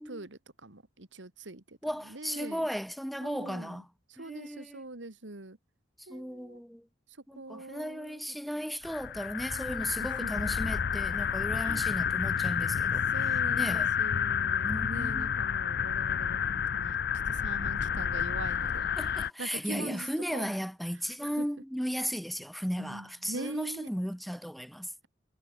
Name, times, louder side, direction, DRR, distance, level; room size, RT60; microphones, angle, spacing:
voice 1, 0.0-1.8 2.1-2.6 3.2-3.8 4.1-5.6 6.1-6.6 7.3-8.2 10.0-10.6 11.6-11.9 13.1-17.0 17.3-18.9 19.4-20.5 21.2-21.5 22.8-23.9, right 2 dB, 90° right, 2.1 m, -43 dB
voice 2, 1.8-3.9 4.2-4.8 6.0-6.9 7.3-13.0 13.5-14.0 14.6-15.3 19.0-24.9, equal, ahead, 5.5 m, -35 dB
sound 1, 8.8-19.3, left 8 dB, 55° left, 0.5 m, -30 dB
head